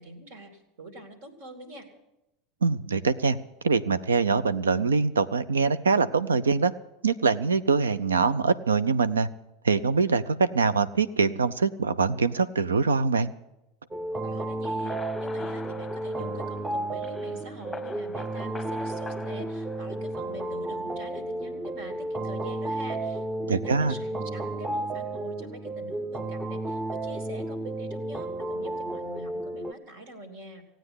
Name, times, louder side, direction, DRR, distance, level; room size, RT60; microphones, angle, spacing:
voice 1, 0.0-1.9 14.2-30.6, right 1 dB, 70° right, 7 dB, 2.9 m, -44 dB
voice 2, 2.6-3.4 3.6-6.7 7.0-9.3 9.6-13.3 23.5-23.9, right 5 dB, 90° right, 15 dB, 0.6 m, -23 dB
sound 1, 13.9-29.7, right 2 dB, 20° right, 0.9 m, -32 dB
sound 2, 14.6-20.4, left 4 dB, 10° left, 0.9 m, -45 dB
16.5 x 9.0 x 9.7 m, 0.93 s
hypercardioid pair, 90°, 0 cm